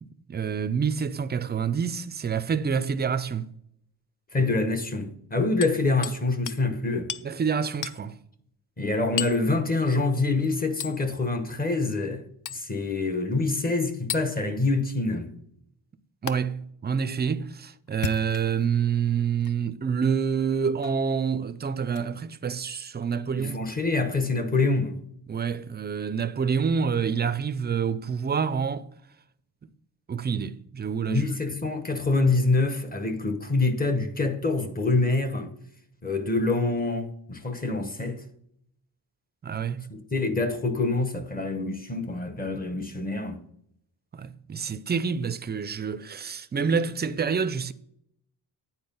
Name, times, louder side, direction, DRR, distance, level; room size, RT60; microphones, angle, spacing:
voice 1, 0.0-3.5 7.2-8.1 16.2-23.6 25.3-28.9 29.6-29.7 30.1-31.2 39.4-39.9 44.1-47.7, right 6 dB, 25° right, 0.4 m, -27 dB
voice 2, 4.3-7.1 8.8-12.2 12.5-15.3 23.3-25.0 31.1-35.5 36.0-38.2 39.9-43.4, left 3 dB, 20° left, 0.9 m, -26 dB
Hammer, 5.6-6.2 6.5-6.6 7.1-7.3 7.8-8.0 9.2-9.4 10.8-11.0 12.5-12.7 14.1-14.3 16.3-16.4 17.9-18.7 19.4-19.6 20.8-21.0 21.9-22.1 23.6-23.7, left 9 dB, 50° left, 0.5 m, -34 dB
9.6 x 4.5 x 5.4 m
wide cardioid pair, 125°, 39 cm